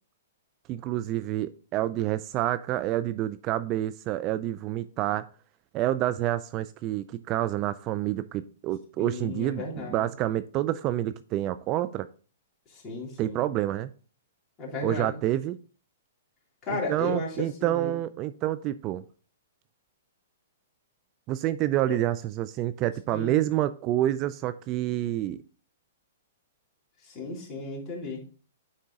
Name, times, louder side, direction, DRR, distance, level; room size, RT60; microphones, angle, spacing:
voice 1, 0.7-5.2 5.7-12.1 13.2-13.9 14.8-15.6 16.9-19.0 21.3-25.4, right 13 dB, 35° right, 13 dB, 0.4 m, -28 dB
voice 2, 9.0-10.1 12.7-13.5 14.6-15.2 16.6-17.9 21.9-22.0 23.1-23.4 27.0-28.3, left 3 dB, 25° left, -3 dB, 2.9 m, -35 dB
9.5 x 3.8 x 3.6 m, 0.38 s
hypercardioid pair, 130°, 0 cm